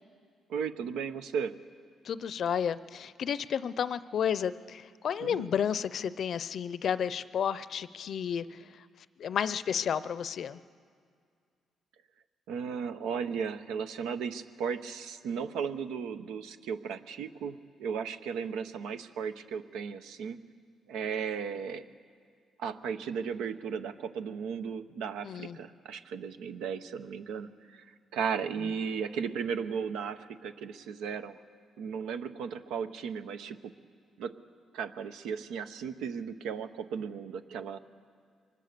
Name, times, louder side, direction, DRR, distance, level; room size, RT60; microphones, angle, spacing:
voice 1, 0.5-1.5 5.2-5.4 12.5-20.4 20.9-21.8 22.6-27.9 28.1-31.4 31.8-33.7 34.2-34.3 34.7-37.8, right 6 dB, 90° right, 10 dB, 0.8 m, -35 dB
voice 2, 2.0-8.7 9.2-10.6 25.2-25.6, left 8 dB, 60° left, 16 dB, 0.5 m, -32 dB
24.0 x 19.5 x 6.8 m, 2.2 s
cardioid pair, 90°, 0 cm